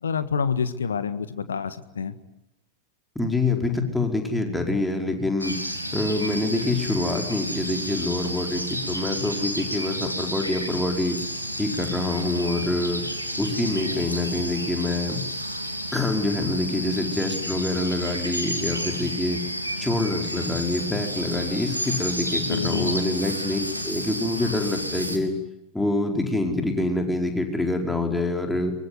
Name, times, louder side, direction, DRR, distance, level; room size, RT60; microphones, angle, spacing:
voice 1, 0.0-2.2 22.5-23.0, left 6 dB, 70° left, 13 dB, 1.7 m, -27 dB
voice 2, 3.1-5.6 5.9-11.2 11.6-13.0 13.3-15.4 15.9-19.4 19.8-25.3 25.7-28.7, left 2 dB, 5° left, 3 dB, 4.9 m, -26 dB
sound 1, 5.4-25.2, equal, 90° left, 3.5 m, -31 dB
24.5 x 24.0 x 9.6 m, 0.86 s
figure-of-eight pair, 90°, 0 cm